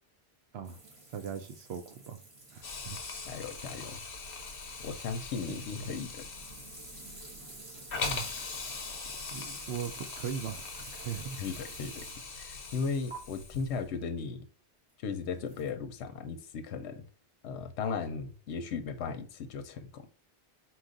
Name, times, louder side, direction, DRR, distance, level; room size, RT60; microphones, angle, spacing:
sound 1, 0.6-12.4 13.1-13.2 15.4-15.7, right 2 dB, 30° right, 1.0 m, -50 dB
voice 1, 1.1-2.2 2.5-3.0 5.5-5.9 8.0-8.3 9.3-11.4, right 7 dB, 70° right, 0.8 m, -39 dB
Hiss, 2.6-13.9, left 4 dB, 60° left, 1.0 m, -41 dB
voice 2, 3.3-4.0 4.8-6.2 11.4-12.0 12.4-14.4 15.0-17.0 17.4-20.1, left 5 dB, 80° left, 0.9 m, -36 dB
4.4 x 2.4 x 3.8 m
omnidirectional pair, 1.1 m